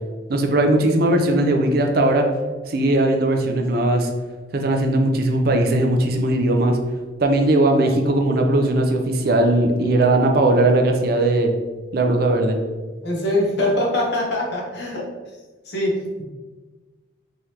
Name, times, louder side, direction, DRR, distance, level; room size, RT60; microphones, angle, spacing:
voice 1, 0.3-2.3 2.7-4.1 4.5-6.8 7.2-11.5 11.9-12.6, right 1 dB, 50° right, 4 dB, 0.4 m, -18 dB
voice 2, 13.0-15.0 15.6-16.2, left 1 dB, 60° left, -2 dB, 0.9 m, -23 dB
3.6 x 3.2 x 2.8 m, 1.3 s
head